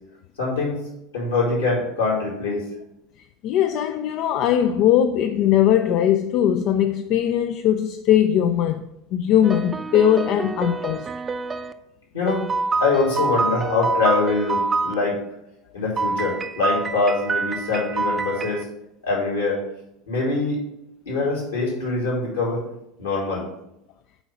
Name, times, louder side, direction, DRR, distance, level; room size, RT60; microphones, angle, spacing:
voice 1, 0.4-0.8 1.1-2.7 12.1-12.5 12.8-15.2 15.7-18.7 19.0-19.6 20.1-20.6 21.1-22.6 23.0-23.4, left 3 dB, 80° left, 3.6 m, -23 dB
voice 2, 3.4-11.1, left 10 dB, 50° left, 0.4 m, -20 dB
sound 1, 9.4-11.7 12.3-14.9 16.0-18.6, right 4 dB, 25° right, 0.6 m, -26 dB
8.0 x 4.7 x 6.0 m
figure-of-eight pair, 75°, 0 cm